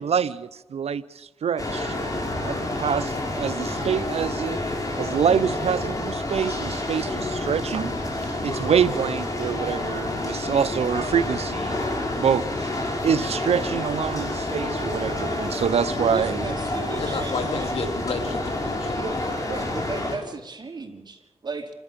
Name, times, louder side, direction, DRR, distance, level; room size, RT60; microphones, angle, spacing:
voice 1, 0.0-1.9 2.4-4.6 5.0-7.9 8.4-11.8 12.2-12.7 13.0-16.4, right 7 dB, 75° right, 0.6 m, -26 dB
sound 1, 1.6-20.2, left 2 dB, 35° left, 5.3 m, -29 dB
voice 2, 15.9-17.7 19.0-19.2 19.4-21.7, right 4 dB, 45° right, 4.3 m, -35 dB
voice 3, 17.0-19.0 19.3-19.4, left 4 dB, 70° left, 3.1 m, -31 dB
29.0 x 12.5 x 7.4 m
cardioid pair, 65°, 11 cm